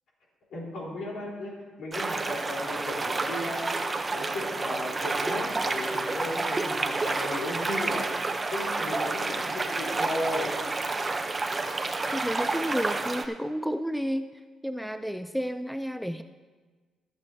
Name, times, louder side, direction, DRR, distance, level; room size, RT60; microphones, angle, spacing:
voice 1, 0.5-3.7 4.1-8.1 8.5-10.5, left 1 dB, 70° left, -4 dB, 3.9 m, -35 dB
sound 1, 1.9-13.3, right 3 dB, 25° right, 0.8 m, -30 dB
voice 2, 12.1-14.3 14.6-16.2, equal, ahead, 10 dB, 0.4 m, -31 dB
23.0 x 7.8 x 2.8 m, 1.4 s
cardioid pair, 90°, 0 cm